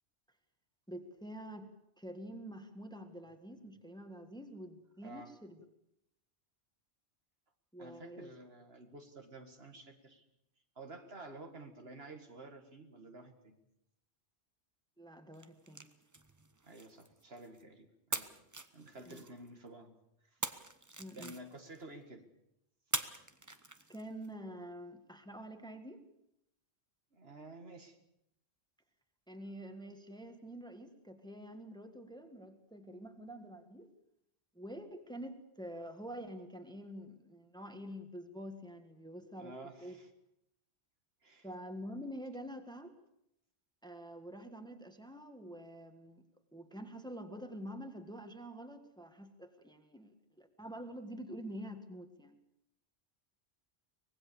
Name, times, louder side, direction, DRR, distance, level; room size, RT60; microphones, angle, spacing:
voice 1, 0.9-1.7 2.0-5.6 7.7-8.3 15.0-15.9 19.1-19.2 21.0-21.3 23.9-26.0 29.3-33.9 34.5-39.5 39.8-40.0 41.4-42.9 43.8-46.2 46.5-52.4, equal, 5° left, 7 dB, 1.6 m, -47 dB
voice 2, 7.8-10.3 10.8-13.6 16.6-18.3 18.7-19.9 20.3-20.4 21.1-22.3 27.1-28.0 39.4-40.1 41.2-41.5, right 2 dB, 60° right, 6 dB, 2.2 m, -51 dB
sound 1, 15.3-17.6 18.1-19.7 20.4-21.8 22.9-24.3, right 2 dB, 15° right, 0.9 m, -43 dB
24.0 x 19.0 x 6.9 m, 0.80 s
omnidirectional pair, 1.2 m